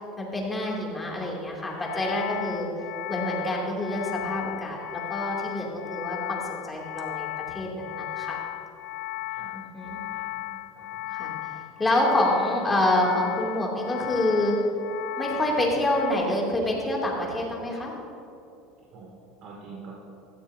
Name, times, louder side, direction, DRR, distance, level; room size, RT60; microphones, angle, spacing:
voice 1, 0.2-2.7 3.1-4.8 5.1-8.4 9.5-10.0 11.1-11.5 11.8-14.6 15.2-17.9, left 1 dB, 15° left, -3 dB, 2.8 m, -27 dB
sound 1, 1.7-16.1, left 16 dB, 60° left, 0.5 m, -36 dB
voice 2, 9.2-9.5 10.1-11.1 18.9-19.1 19.4-19.9, right 4 dB, 50° right, -3 dB, 2.5 m, -46 dB
16.0 x 14.5 x 2.8 m, 2.8 s
supercardioid pair, 135°, 0 cm